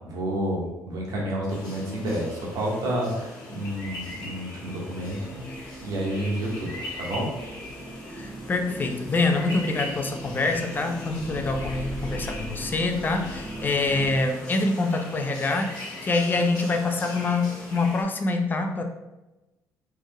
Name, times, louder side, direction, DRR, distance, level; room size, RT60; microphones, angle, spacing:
voice 1, 0.1-5.4 5.8-7.3, right 1 dB, 65° right, -2 dB, 1.1 m, -30 dB
sound 1, 1.5-18.0, left 2 dB, 80° left, 1.0 m, -40 dB
sound 2, 5.0-14.2, right 1 dB, 25° right, 0.7 m, -39 dB
voice 2, 8.1-18.8, left 3 dB, 30° left, 5 dB, 0.4 m, -25 dB
3.3 x 2.0 x 3.6 m, 1.0 s
cardioid pair, 95°, 7 cm